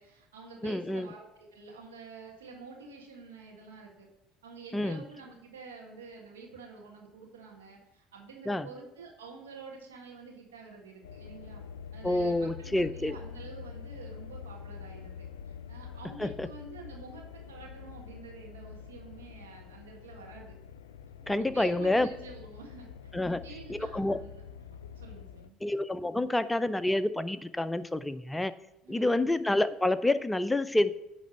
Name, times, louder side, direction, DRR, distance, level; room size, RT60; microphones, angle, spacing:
voice 1, 0.0-4.1 4.4-11.6 11.9-20.5 21.3-22.9 23.2-24.4 24.9-25.6 28.8-29.2, right 4 dB, 90° right, 0 dB, 1.6 m, -48 dB
voice 2, 0.6-1.1 4.7-5.0 8.5-8.7 12.0-13.2 16.2-16.5 21.3-22.1 23.1-23.4 23.7-24.2 25.6-28.5 28.9-30.9, left 1 dB, 10° left, 13 dB, 0.5 m, -28 dB
sound 1, 11.0-25.5, left 7 dB, 90° left, 0.3 m, -46 dB
10.0 x 3.4 x 6.3 m, 0.91 s
hypercardioid pair, 65°, 0 cm